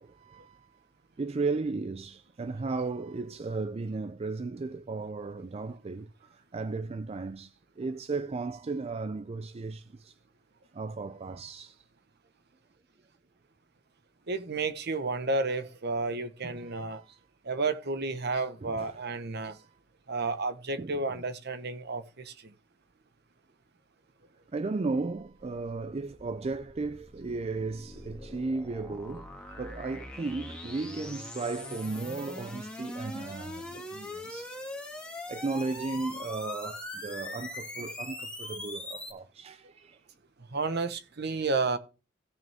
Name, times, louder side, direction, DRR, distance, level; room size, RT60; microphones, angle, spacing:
voice 1, 0.0-0.8 1.2-10.1 10.7-11.8 16.4-17.2 18.6-19.0 19.4-19.7 20.8-21.2 24.5-29.3 29.6-34.8 35.3-40.0, right 3 dB, 30° right, 0.4 m, -35 dB
voice 2, 14.3-17.0 17.4-19.6 20.1-22.3 38.4-38.5 40.5-41.8, right 3 dB, 55° right, 1.1 m, -31 dB
sound 1, 25.2-39.1, left 1 dB, 5° left, 1.8 m, -42 dB
16.5 x 6.2 x 3.5 m
head